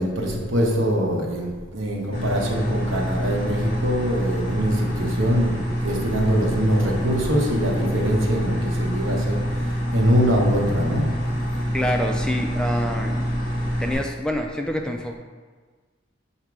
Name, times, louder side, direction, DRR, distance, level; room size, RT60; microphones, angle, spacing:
voice 1, 0.0-9.4 9.9-11.0, equal, 75° right, -1 dB, 1.0 m, -23 dB
sound 1, 2.1-13.9, equal, 55° left, 1.6 m, -26 dB
voice 2, 11.7-13.3 13.8-15.2, equal, 5° left, 2 dB, 0.3 m, -27 dB
7.3 x 2.8 x 4.6 m, 1.4 s
head